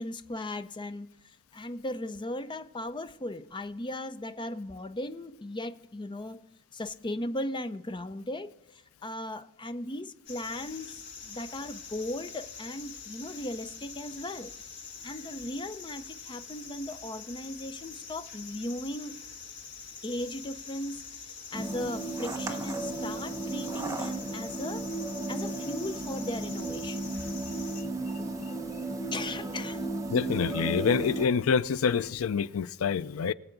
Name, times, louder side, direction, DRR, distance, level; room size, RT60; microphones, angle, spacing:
voice 1, 0.0-6.4 6.7-14.5 15.0-19.2 20.0-24.9 25.3-27.1 29.1-29.9, left 1 dB, 25° left, 0.6 m, -37 dB
sound 1, 10.3-27.8, left 6 dB, 55° left, 1.6 m, -45 dB
sound 2, 21.5-31.3, right 2 dB, 15° right, 1.1 m, -34 dB
voice 2, 30.1-33.3, left 6 dB, 85° left, 0.4 m, -27 dB
22.5 x 7.9 x 3.9 m
head